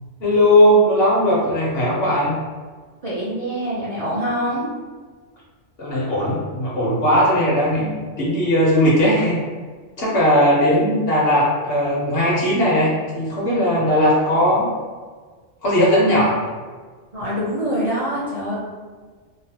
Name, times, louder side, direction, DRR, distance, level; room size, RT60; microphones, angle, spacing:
voice 1, 0.2-2.4 5.8-9.4 10.0-14.7 15.6-16.4, equal, 55° left, -6 dB, 1.0 m, -18 dB
voice 2, 3.0-4.6 10.7-10.8 17.1-18.5, equal, 50° right, -7 dB, 0.4 m, -25 dB
3.1 x 2.1 x 2.7 m, 1.5 s
omnidirectional pair, 1.2 m